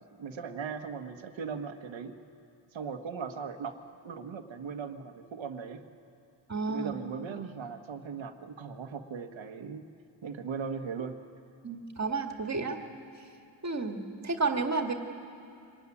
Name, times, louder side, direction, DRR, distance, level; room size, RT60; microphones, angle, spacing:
voice 1, 0.2-2.1 2.7-3.8 4.0-5.8 6.7-9.8 10.2-11.2, right 6 dB, 90° right, 6 dB, 1.5 m, -38 dB
voice 2, 6.5-6.9 11.6-12.8 13.6-14.9, right 4 dB, 35° right, 4 dB, 2.0 m, -31 dB
24.5 x 19.0 x 9.9 m, 2.7 s
cardioid pair, 90°, 45 cm